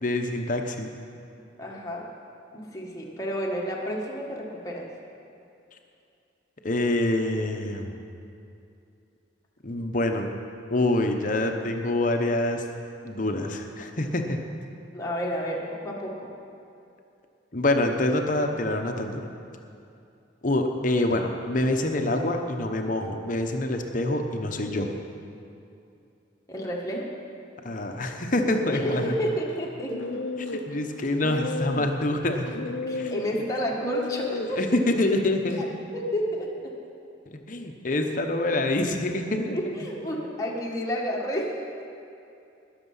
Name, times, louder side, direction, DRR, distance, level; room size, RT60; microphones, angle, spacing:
voice 1, 0.0-0.9 6.6-8.0 9.6-10.3 10.7-12.6 13.0-14.4 17.5-19.2 20.4-25.0 27.6-29.1 30.7-32.5 33.0-33.1 34.5-35.6 37.3-39.6, left 1 dB, 45° left, 4 dB, 1.0 m, -26 dB
voice 2, 1.6-2.1 2.5-4.9 14.9-16.2 26.5-27.1 28.7-30.0 32.9-35.0 35.6-35.7 35.9-36.5 39.5-41.5, equal, 20° left, -2 dB, 1.6 m, -30 dB
sound 1, 28.0-35.8, left 3 dB, 75° left, 0.7 m, -35 dB
20.0 x 6.8 x 5.6 m, 2.6 s
head